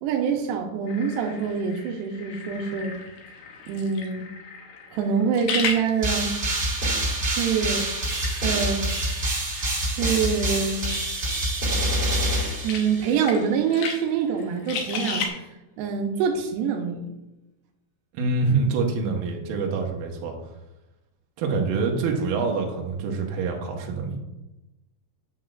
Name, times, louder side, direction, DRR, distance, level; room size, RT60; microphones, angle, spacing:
voice 1, 0.0-2.9 3.7-4.3 4.9-6.4 7.2-7.9 8.4-8.8 9.9-10.9 12.6-15.2 15.8-17.0, right 6 dB, 90° right, 3 dB, 2.9 m, -25 dB
sound 1, 0.9-15.3, left 5 dB, 70° left, 2.3 m, -36 dB
sound 2, 6.0-13.3, right 1 dB, 35° right, 2.0 m, -26 dB
voice 2, 18.1-20.3 21.4-24.2, right 4 dB, 70° right, 1 dB, 2.4 m, -25 dB
8.7 x 7.9 x 2.4 m, 0.99 s
omnidirectional pair, 4.8 m